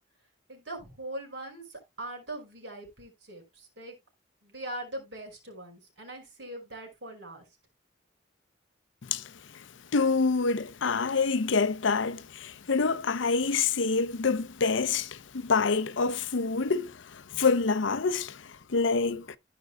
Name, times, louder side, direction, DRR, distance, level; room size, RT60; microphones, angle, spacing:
voice 1, 0.5-4.0 4.4-7.4, right 1 dB, 65° right, 5.4 m, -41 dB
voice 2, 9.9-18.4 18.7-19.4, left 4 dB, 80° left, 0.7 m, -27 dB
15.5 x 5.3 x 2.2 m
head